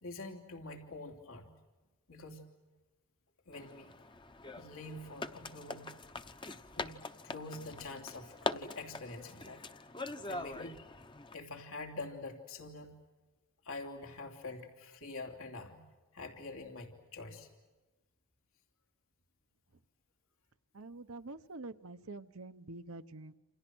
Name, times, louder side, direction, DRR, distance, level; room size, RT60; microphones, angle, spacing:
voice 1, 0.0-1.5 2.1-2.5 3.5-3.9 4.5-6.0 6.7-9.6 10.3-10.8 11.3-13.0 13.6-15.8 16.1-17.5, left 2 dB, 80° left, 3 dB, 3.1 m, -46 dB
sound 1, 3.5-11.3, left 3 dB, 20° left, 0.9 m, -43 dB
voice 2, 20.7-23.3, right 2 dB, 80° right, 9 dB, 1.0 m, -46 dB
28.5 x 28.5 x 6.3 m, 1.1 s
head